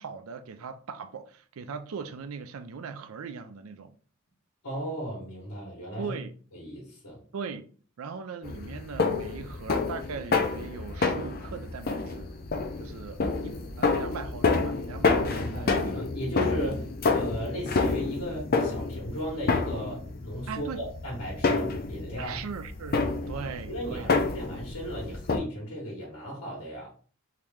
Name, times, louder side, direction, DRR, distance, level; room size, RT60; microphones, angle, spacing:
voice 1, 0.0-3.9 6.0-6.3 7.3-7.6 8.0-12.3 12.8-16.0 20.5-20.8 22.2-23.0 23.3-24.2, right 5 dB, 75° right, 0.4 m, -39 dB
voice 2, 4.6-6.1 6.5-7.2 15.3-22.4 23.7-26.9, equal, 85° left, 1.3 m, -36 dB
sound 1, 8.4-25.4, left 4 dB, 45° left, 0.4 m, -29 dB
3.1 x 2.9 x 3.5 m
head